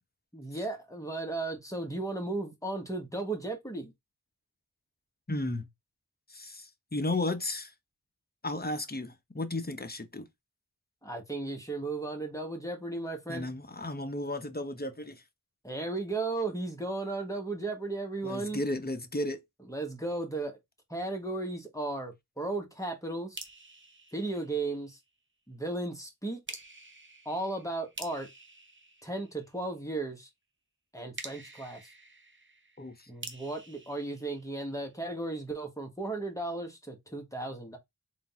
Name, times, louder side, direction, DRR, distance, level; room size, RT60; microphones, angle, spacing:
voice 1, 0.3-3.9 11.0-13.5 15.6-18.6 19.7-20.6 20.9-23.4 24.1-25.0 25.5-26.4 27.2-28.3 29.0-30.3 30.9-31.8 33.1-37.8, right 2 dB, 10° left, 1.5 m, -35 dB
voice 2, 5.3-5.7 6.3-7.7 8.4-10.3 13.3-15.2 18.2-19.4 32.8-33.1, left 2 dB, 25° left, 0.9 m, -34 dB
sound 1, 23.4-25.1 26.5-29.8 31.2-35.1, right 2 dB, 30° right, 0.9 m, -48 dB
3.8 x 2.7 x 3.6 m
wide cardioid pair, 60°, 36 cm